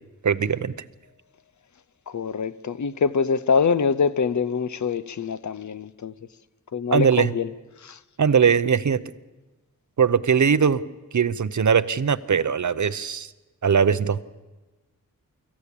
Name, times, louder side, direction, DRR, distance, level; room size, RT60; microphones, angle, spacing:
voice 1, 0.2-0.7 6.9-7.3 8.2-9.0 10.0-10.8 11.1-13.3 13.6-14.2, right 7 dB, 60° right, 0.8 m, -20 dB
voice 2, 2.1-6.1 6.7-7.5 7.8-8.0, left 5 dB, 55° left, 0.7 m, -24 dB
24.5 x 14.5 x 8.5 m
wide cardioid pair, 100°, 34 cm